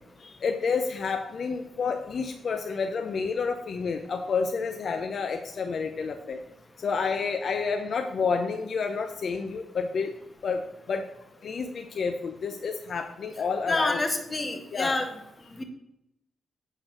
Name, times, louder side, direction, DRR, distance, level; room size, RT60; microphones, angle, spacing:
voice 1, 0.2-6.4 6.8-10.1 10.4-11.0 11.4-14.0 14.7-15.0, left 5 dB, 65° left, 5 dB, 0.7 m, -29 dB
voice 2, 13.7-15.0 15.6-15.7, left 2 dB, 30° left, 5 dB, 1.6 m, -27 dB
9.1 x 4.0 x 6.2 m, 0.86 s
cardioid pair, 65°, 0 cm